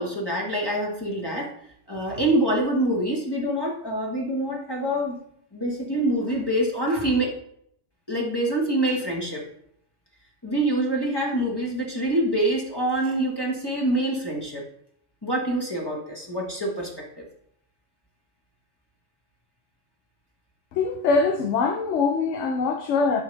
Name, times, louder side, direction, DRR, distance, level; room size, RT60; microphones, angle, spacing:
voice 1, 0.0-1.5 1.9-5.2 5.5-7.2 8.1-9.4 10.4-14.6 15.2-17.2, right 1 dB, 20° left, 1.6 m, -25 dB
voice 2, 20.7-23.2, left 4 dB, 80° left, 1.0 m, -23 dB
11.0 x 4.7 x 3.4 m
omnidirectional pair, 1.2 m